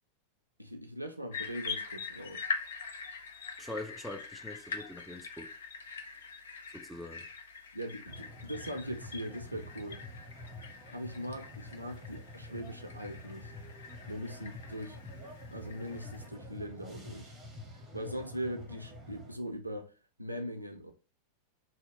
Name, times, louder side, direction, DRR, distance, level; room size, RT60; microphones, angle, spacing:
voice 1, 0.6-2.5 7.7-10.0 10.9-13.5 14.1-15.1 15.5-17.3 17.9-19.9 20.2-20.9, equal, 85° right, 0.4 m, -40 dB
sound 1, 1.3-16.3, left 5 dB, 65° left, 0.4 m, -44 dB
voice 2, 3.6-5.5 6.7-7.3, left 1 dB, ahead, 0.4 m, -43 dB
sound 2, 8.1-19.4, left 1 dB, 15° right, 0.8 m, -48 dB
2.8 x 2.0 x 3.5 m
figure-of-eight pair, 90°, 0 cm